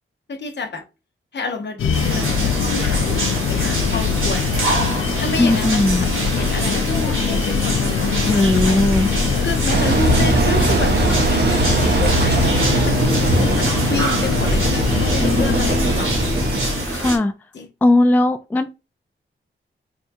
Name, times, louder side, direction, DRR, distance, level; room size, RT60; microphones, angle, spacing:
voice 1, 0.3-0.8 1.3-4.8 5.2-8.7 9.4-16.1 17.5-17.7, left 3 dB, 55° left, 1.0 m, -29 dB
sound 1, 1.8-16.8, left 7 dB, 75° left, 0.4 m, -22 dB
sound 2, 1.9-17.2, right 2 dB, 80° right, 1.8 m, -25 dB
voice 2, 5.4-6.1 8.2-9.1 15.2-15.9 16.9-17.3 17.8-18.7, left 2 dB, 10° left, 0.4 m, -18 dB
Engine, 9.7-16.7, right 3 dB, 50° right, 0.8 m, -21 dB
5.5 x 2.3 x 2.6 m
cardioid pair, 60°, 21 cm